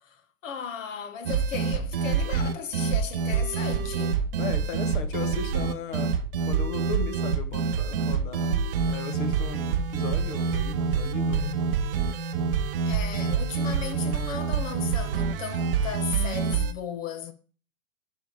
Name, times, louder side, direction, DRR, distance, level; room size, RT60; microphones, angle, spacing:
voice 1, 0.0-4.3 12.9-17.3, left 7 dB, 60° left, 1.3 m, -36 dB
sound 1, 1.3-16.7, right 5 dB, 40° right, 0.5 m, -27 dB
voice 2, 4.4-6.2 6.5-11.6, left 7 dB, 35° left, 0.8 m, -37 dB
9.6 x 5.2 x 5.1 m
supercardioid pair, 175°, 43 cm